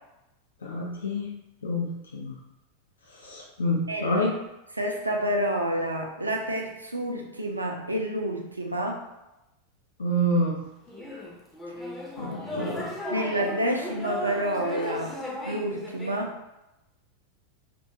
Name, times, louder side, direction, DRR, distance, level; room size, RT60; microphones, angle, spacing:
voice 1, 0.6-1.3 1.6-2.3 3.2-4.4 10.0-10.6 12.2-12.9, equal, 70° left, -2 dB, 0.4 m, -27 dB
voice 2, 3.9-4.3 4.7-9.0 13.1-15.2 15.4-16.4, right 1 dB, 80° right, 2 dB, 0.4 m, -29 dB
sound 1, 10.9-16.2, left 1 dB, 10° left, 0.5 m, -36 dB
2.4 x 2.2 x 2.7 m, 0.95 s
figure-of-eight pair, 90°, 0 cm